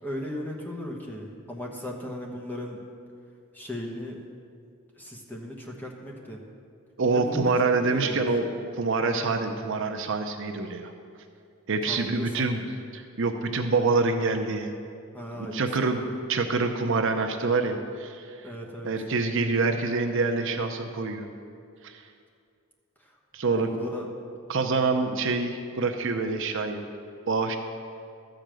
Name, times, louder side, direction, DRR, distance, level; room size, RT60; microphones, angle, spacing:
voice 1, 0.0-2.8 3.5-4.2 5.0-6.4 7.1-7.5 7.8-8.3 11.9-12.7 15.1-16.1 18.4-18.9 23.5-24.1, left 1 dB, 10° left, -1 dB, 1.2 m, -37 dB
voice 2, 7.0-10.9 11.7-12.6 12.9-14.7 15.4-16.0 16.3-18.2 18.8-21.3 21.8-21.9 23.3-23.7 24.5-26.8 27.3-27.6, right 3 dB, 60° right, 5 dB, 0.7 m, -26 dB
13.0 x 5.2 x 7.6 m, 2.3 s
head